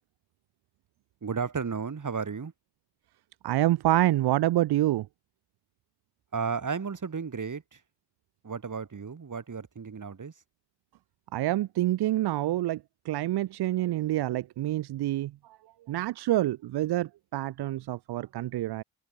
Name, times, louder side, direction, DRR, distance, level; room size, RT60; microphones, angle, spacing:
voice 1, 1.2-2.5 6.3-7.8 8.4-10.3, right 5 dB, 50° right, 6.8 m, -33 dB
voice 2, 3.4-5.1 11.3-12.8 13.0-15.3 15.9-18.8, right 15 dB, 80° right, 1.4 m, -27 dB
supercardioid pair, 40°, 38 cm